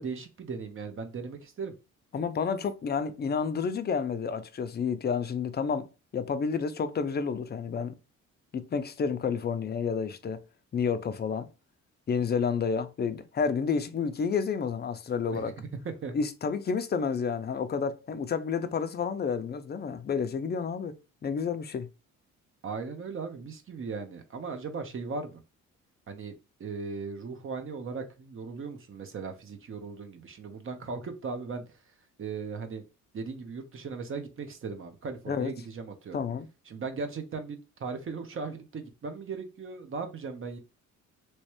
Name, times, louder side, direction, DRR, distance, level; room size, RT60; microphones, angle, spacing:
voice 1, 0.0-1.7 15.3-16.2 22.6-25.4 26.1-26.3 26.6-31.6 32.2-32.8 33.1-36.2 36.7-40.6, right 4 dB, 45° right, 0.9 m, -37 dB
voice 2, 2.1-5.9 6.1-7.9 8.5-10.4 10.7-11.5 12.1-15.5 16.1-21.9 35.3-35.5 36.1-36.5, left 6 dB, 35° left, 0.6 m, -30 dB
3.1 x 3.1 x 3.0 m
cardioid pair, 90°, 30 cm